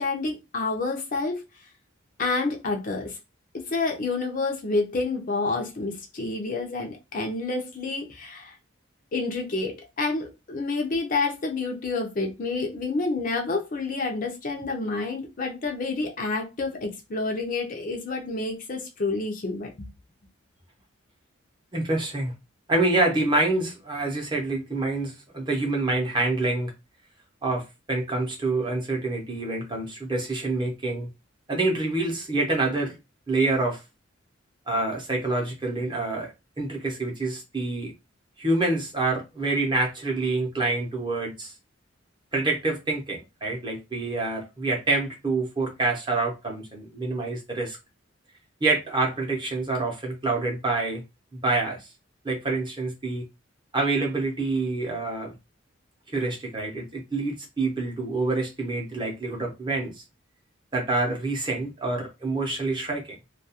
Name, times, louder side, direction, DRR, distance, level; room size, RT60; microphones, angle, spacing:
voice 1, 0.0-1.4 2.2-3.2 3.5-8.5 9.1-19.9, left 3 dB, 40° left, 0.5 m, -29 dB
voice 2, 21.7-22.3 22.7-26.7 27.4-31.1 31.5-33.0 33.3-33.8 34.7-37.9 38.4-41.5 42.3-47.8 48.6-51.0 51.3-51.9 52.2-53.2 53.7-55.3 56.1-59.9 60.7-63.0, right 2 dB, 25° right, 0.7 m, -27 dB
2.3 x 2.3 x 2.8 m
head